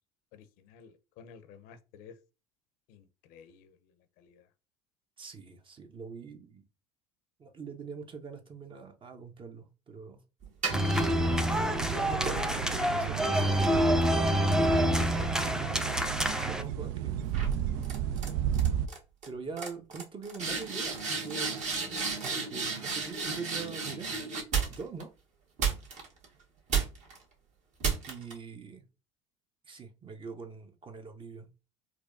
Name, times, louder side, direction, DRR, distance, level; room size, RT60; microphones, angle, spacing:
voice 1, 0.3-2.2 2.9-3.9 4.2-4.5, left 6 dB, 65° left, 0.6 m, -53 dB
voice 2, 5.2-6.6 7.4-10.2 11.4-14.1 14.6-15.9 16.4-17.2 19.2-21.7 22.2-24.3 24.7-25.1 28.1-28.8 29.7-31.5, right 5 dB, 30° right, 0.8 m, -44 dB
sound 1, 10.4-11.6 12.3-15.8 16.2-16.6 17.3-17.5 17.8-18.3 18.5-19.0 19.2-19.3 19.6-25.0 25.6-26.3 26.7-27.2 27.8-28.3, right 5 dB, 45° right, 1.4 m, -34 dB
sound 2, 10.7-16.6, equal, 5° right, 0.5 m, -27 dB
sound 3, 10.7-18.9, right 9 dB, 70° right, 0.4 m, -33 dB
4.4 x 2.3 x 2.5 m
hypercardioid pair, 70°, 16 cm